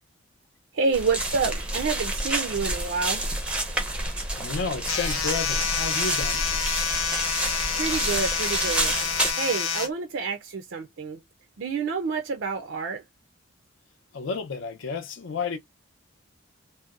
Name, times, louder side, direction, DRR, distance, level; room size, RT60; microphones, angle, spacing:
voice 1, 0.7-3.2 7.8-8.9 9.4-11.2 11.6-13.0, right 4 dB, 65° right, 0.4 m, -28 dB
sound 1, 0.9-9.3, right 1 dB, 5° right, 0.5 m, -29 dB
voice 2, 4.4-6.4 14.1-15.6, left 4 dB, 65° left, 0.5 m, -31 dB
sound 2, 4.9-9.9, left 6 dB, 85° left, 0.8 m, -28 dB
2.7 x 2.1 x 2.3 m
head